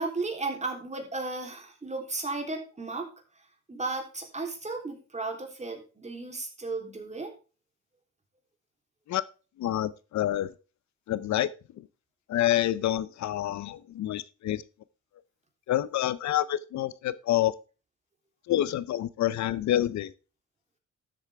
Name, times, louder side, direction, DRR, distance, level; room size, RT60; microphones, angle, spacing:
voice 1, 0.0-3.1 3.7-7.3, right 3 dB, 20° right, 3.4 m, -34 dB
voice 2, 9.6-10.5 11.1-11.5 12.3-14.6 15.7-17.5 18.5-20.1, left 13 dB, 65° left, 0.6 m, -27 dB
13.0 x 8.0 x 3.5 m
cardioid pair, 90°, 30 cm